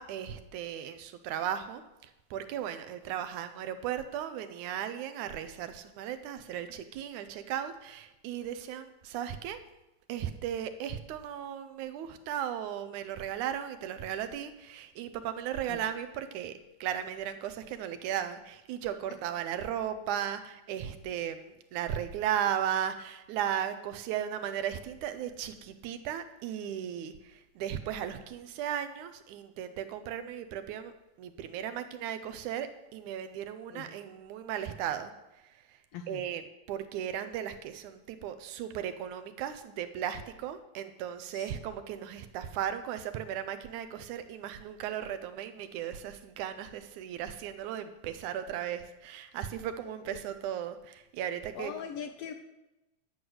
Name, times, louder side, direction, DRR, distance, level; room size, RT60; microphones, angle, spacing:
voice 1, 0.0-9.6 10.1-30.9 31.2-35.1 35.4-35.8 36.1-51.7, right 10 dB, 85° right, 10 dB, 2.3 m, -36 dB
voice 2, 51.5-52.3, left 7 dB, 70° left, 5 dB, 1.5 m, -41 dB
11.5 x 6.4 x 7.9 m, 0.97 s
omnidirectional pair, 3.4 m